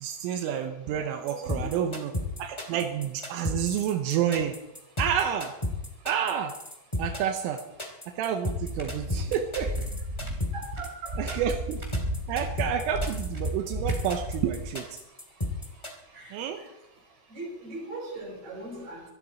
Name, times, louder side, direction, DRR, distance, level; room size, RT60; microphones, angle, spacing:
voice 1, 0.0-2.1 2.4-4.6 5.0-5.6 6.1-6.6 7.0-7.6 8.1-9.7 11.2-11.8 12.3-15.0 16.3-16.6, right 9 dB, 85° right, 5 dB, 3.5 m, -29 dB
voice 2, 0.9-2.0 9.5-9.7 10.5-11.4 16.1-16.3 17.3-19.0, right 2 dB, 35° right, 1 dB, 5.3 m, -40 dB
sound 1, 1.3-15.9, left 1 dB, 25° left, 0.5 m, -33 dB
sound 2, 8.6-14.7, right 1 dB, 20° right, 2.3 m, -34 dB
24.5 x 12.5 x 4.2 m, 0.90 s
omnidirectional pair, 5.7 m